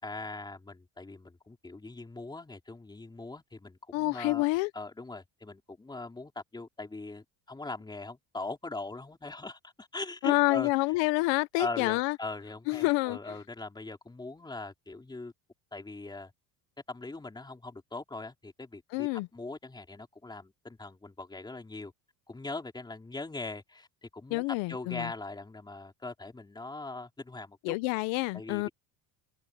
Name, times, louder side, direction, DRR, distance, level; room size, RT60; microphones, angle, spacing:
voice 1, 0.0-4.5 4.7-10.7 11.6-15.3 15.7-16.3 16.9-21.9 22.3-27.8 28.3-28.7, left 3 dB, 10° left, 4.5 m, -41 dB
voice 2, 3.9-4.7 10.2-12.2 12.7-13.4 18.9-19.3 24.3-25.1 27.6-28.7, left 23 dB, 85° left, 0.8 m, -28 dB
cardioid pair, 165°, 44 cm